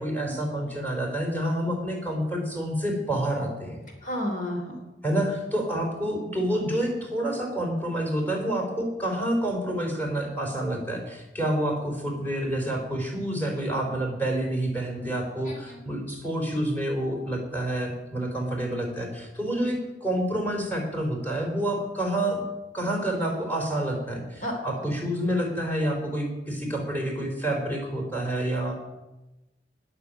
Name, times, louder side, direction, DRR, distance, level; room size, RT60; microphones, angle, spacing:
voice 1, 0.0-3.8 5.0-22.5 22.7-28.7, right 1 dB, 10° left, 2 dB, 3.9 m, -28 dB
voice 2, 4.0-4.8 15.5-15.8 24.4-24.5 24.8-24.9, equal, 45° left, 1 dB, 3.1 m, -31 dB
20.0 x 6.9 x 8.9 m, 1.0 s
head